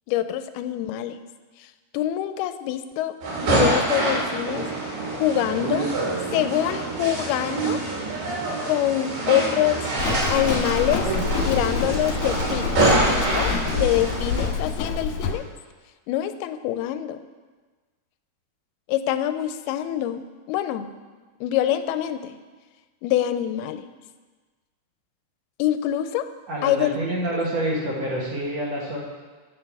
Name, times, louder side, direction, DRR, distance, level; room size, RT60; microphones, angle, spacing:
voice 1, 0.1-1.2 1.6-1.7 1.9-3.2 3.4-4.7 5.1-5.9 6.3-7.8 8.7-9.9 10.3-11.1 11.4-15.4 16.1-17.2 18.9-20.9 21.4-22.4 23.0-23.9 25.6-26.3 26.6-27.0, left 12 dB, 90° left, 11 dB, 2.5 m, -25 dB
sound 1, 3.2-14.5, right 2 dB, 80° right, 4.5 m, -25 dB
Livestock farm animals working animals, 10.0-15.3, left 5 dB, 65° left, 2.1 m, -27 dB
voice 2, 26.5-29.0, right 1 dB, 50° right, -4 dB, 2.5 m, -27 dB
9.7 x 6.9 x 6.9 m, 1.4 s
omnidirectional pair, 4.4 m